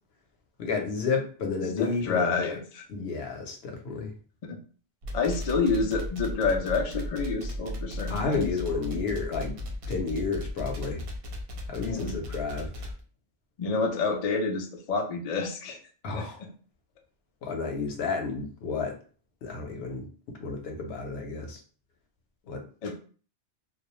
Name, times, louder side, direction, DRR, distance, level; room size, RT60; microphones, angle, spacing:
voice 1, 0.6-2.6 2.9-4.1 8.1-9.5 9.9-11.0 11.7-12.9 16.0-16.4 17.4-19.0 19.4-20.1 20.4-21.6 22.5-22.6, left 4 dB, 65° left, 3 dB, 0.8 m, -31 dB
voice 2, 1.6-2.8 4.4-4.6 5.1-8.5 11.8-12.1 13.6-15.8 16.1-16.2 22.8-22.9, left 4 dB, 80° left, 3 dB, 0.3 m, -28 dB
sound 1, 5.0-13.0, left 1 dB, 65° right, 0.7 m, -35 dB
2.2 x 2.0 x 2.9 m, 0.41 s
omnidirectional pair, 1.2 m